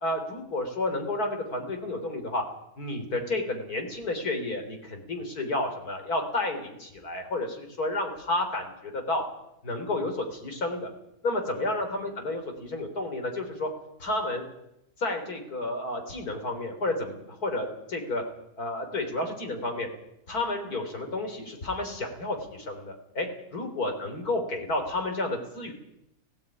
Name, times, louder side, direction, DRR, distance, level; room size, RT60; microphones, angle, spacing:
voice 1, 0.0-2.4 2.8-9.2 9.6-10.9 11.2-13.7 14.0-14.4 15.0-18.2 18.6-19.9 20.3-23.3 23.5-25.7, left 2 dB, 80° left, 4 dB, 4.4 m, -31 dB
17.0 x 16.0 x 9.5 m, 0.82 s
omnidirectional pair, 1.6 m